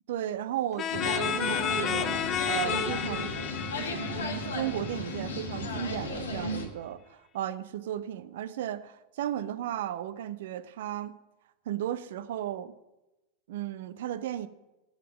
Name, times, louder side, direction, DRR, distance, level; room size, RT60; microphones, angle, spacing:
voice 1, 0.1-2.1 2.4-3.3 3.8-4.0 4.3-11.1 11.7-12.8 13.5-14.5, right 11 dB, 55° right, 15 dB, 0.5 m, -35 dB
sound 1, 0.8-5.4, left 8 dB, 30° left, 0.5 m, -32 dB
sound 2, 0.9-6.7, left 2 dB, 70° left, 1.4 m, -34 dB
7.4 x 7.2 x 7.5 m, 1.0 s
figure-of-eight pair, 90°, 0 cm